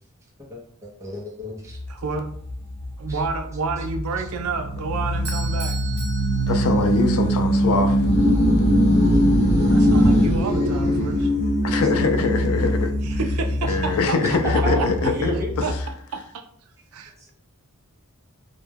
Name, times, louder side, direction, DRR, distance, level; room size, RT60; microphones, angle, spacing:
voice 1, 0.4-1.8 3.1-3.2 14.2-15.5 17.2-17.3, equal, 15° right, -4 dB, 0.6 m, -31 dB
sound 1, 1.7-15.9, equal, 35° left, 1.0 m, -22 dB
voice 2, 1.9-2.3 3.0-5.8 9.6-11.3 13.0-14.9 15.6-15.7 16.1-16.2 16.9-17.1, right 4 dB, 70° right, 6 dB, 0.4 m, -29 dB
Bell / Doorbell, 5.2-7.3, right 5 dB, 50° right, 0.9 m, -37 dB
voice 3, 6.5-8.0 11.6-13.2 13.6-15.9, left 4 dB, 70° left, 7 dB, 0.4 m, -23 dB
2.2 x 2.1 x 3.3 m, 0.64 s
head